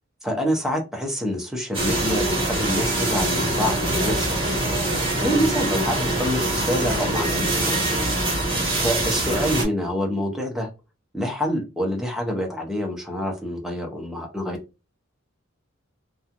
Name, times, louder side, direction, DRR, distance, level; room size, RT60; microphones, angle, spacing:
voice 1, 0.2-4.4 5.2-7.8 8.5-10.7 11.1-14.6, equal, ahead, 1 dB, 0.7 m, -27 dB
sound 1, 1.7-9.6, right 1 dB, 30° right, 1.4 m, -24 dB
3.0 x 2.3 x 2.5 m, 0.28 s
head